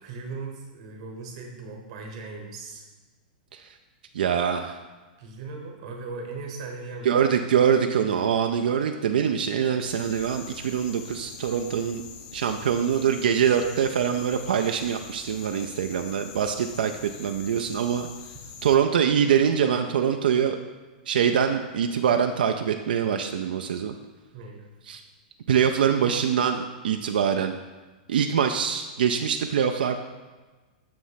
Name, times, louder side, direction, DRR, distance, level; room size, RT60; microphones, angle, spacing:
voice 1, 0.0-2.8 5.2-7.1 24.3-24.7, right 4 dB, 35° right, 2 dB, 1.0 m, -38 dB
voice 2, 4.1-4.8 7.0-12.0 12.3-18.1 18.6-20.6 21.1-24.0 24.9-25.0 25.5-27.5 28.1-30.0, right 8 dB, 80° right, 6 dB, 0.4 m, -24 dB
sound 1, 9.8-18.8, left 7 dB, 25° left, 0.3 m, -44 dB
6.9 x 3.1 x 5.6 m, 1.3 s
supercardioid pair, 175°, 5 cm